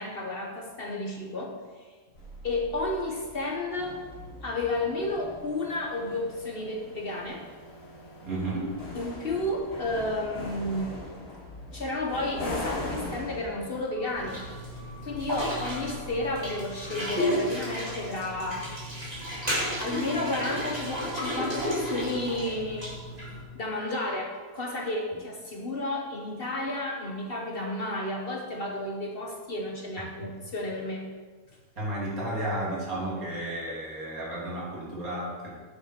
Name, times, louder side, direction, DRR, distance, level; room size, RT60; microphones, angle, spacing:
voice 1, 0.0-1.6 2.4-4.0 4.4-7.5 8.9-11.1 11.7-14.5 15.0-18.7 19.8-23.0 23.5-31.1, left 2 dB, 45° left, 0 dB, 1.0 m, -32 dB
sound 1, 2.2-17.1, left 2 dB, 65° left, 2.7 m, -42 dB
voice 2, 8.2-8.8 31.8-35.5, right 1 dB, 75° right, -6 dB, 3.1 m, -32 dB
sound 2, 14.1-23.4, equal, 25° right, 2.6 m, -33 dB
9.2 x 6.6 x 4.4 m, 1.4 s
omnidirectional pair, 1.5 m